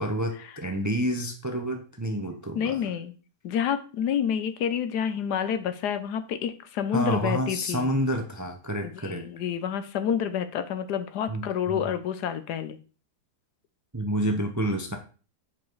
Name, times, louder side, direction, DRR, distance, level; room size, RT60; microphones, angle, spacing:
voice 1, 0.0-2.8 6.9-9.2 11.3-11.8 13.9-15.0, equal, 15° right, 4 dB, 0.6 m, -29 dB
voice 2, 2.5-3.1 3.4-7.9 9.0-12.8, left 8 dB, 80° left, 10 dB, 1.3 m, -28 dB
7.2 x 5.2 x 4.7 m, 0.37 s
omnidirectional pair, 1.8 m